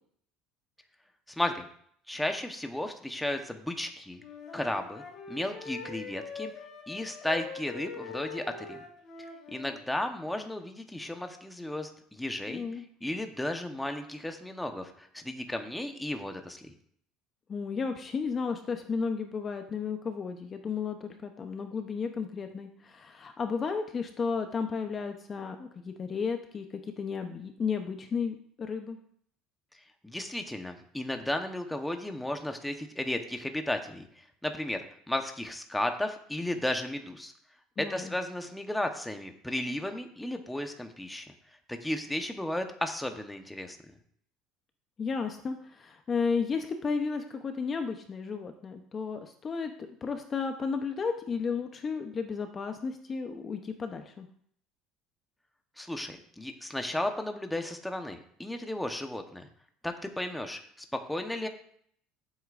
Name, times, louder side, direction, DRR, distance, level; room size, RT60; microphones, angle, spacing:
voice 1, 1.3-1.7 2.1-4.2 4.5-6.5 6.9-8.8 9.5-12.6 13.0-16.7 30.0-34.1 34.4-37.3 37.8-41.3 41.7-43.8 55.8-59.5 59.8-60.6 60.9-61.5, left 1 dB, 5° left, 5 dB, 1.0 m, -34 dB
Wind instrument woodwind instrument, 4.2-9.8, left 5 dB, 45° left, 2.8 m, -43 dB
voice 2, 12.5-12.8 17.5-29.0 37.8-38.1 45.0-49.7 50.0-54.3, left 5 dB, 30° left, 6 dB, 0.7 m, -33 dB
14.5 x 8.2 x 2.5 m, 0.64 s
cardioid pair, 130°, 0 cm